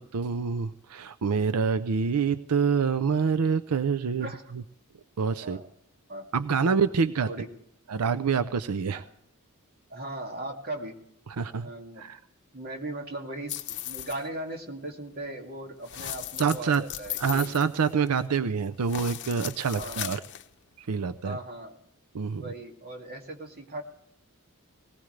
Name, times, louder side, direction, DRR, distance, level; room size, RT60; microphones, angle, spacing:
voice 1, 0.0-4.3 5.2-5.6 6.3-7.3 7.9-9.0 11.4-11.7 12.0-12.2 16.4-16.8 17.2-20.2 20.8-21.4 22.1-22.4, right 5 dB, 90° right, 12 dB, 0.5 m, -26 dB
voice 2, 5.4-5.7 6.1-6.3 7.3-7.5 8.9-9.1 9.9-11.0 11.6-12.1 12.5-17.5 19.8-20.2 21.2-21.8 22.3-23.8, right 1 dB, 45° right, 2 dB, 2.4 m, -38 dB
sound 1, 13.5-14.3 15.8-18.3 18.8-20.5, left 12 dB, 55° left, 0.8 m, -37 dB
19.0 x 19.0 x 3.3 m, 0.76 s
head